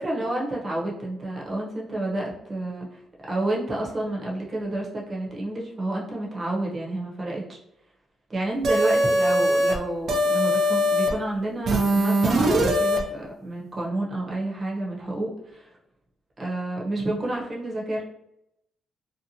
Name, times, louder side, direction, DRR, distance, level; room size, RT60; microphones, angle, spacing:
voice 1, 0.0-3.0 3.3-7.6 8.3-15.8 16.4-18.0, right 1 dB, 35° right, -3 dB, 0.9 m, -29 dB
sound 1, 8.6-9.8 10.1-11.1 11.7-13.0, equal, 60° right, 0.5 m, -21 dB
2.8 x 2.0 x 2.7 m, 0.82 s
cardioid pair, 90°, 0 cm